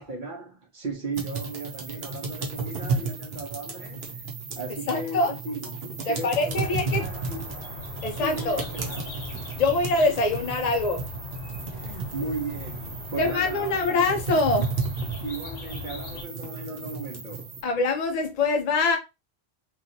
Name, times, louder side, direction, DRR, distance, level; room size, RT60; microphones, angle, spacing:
voice 1, 0.0-4.2 4.6-7.5 8.2-9.1 11.7-14.0 15.2-17.6, right 2 dB, 55° right, 0.8 m, -36 dB
sound 1, 1.1-17.6, right 4 dB, 75° right, 1.0 m, -34 dB
voice 2, 4.9-5.3 6.1-7.1 8.0-8.6 9.6-11.1 13.2-14.7 17.6-19.0, left 3 dB, 55° left, 0.5 m, -24 dB
sound 2, 6.5-16.2, left 4 dB, 85° left, 1.0 m, -40 dB
3.0 x 2.4 x 2.6 m
omnidirectional pair, 1.1 m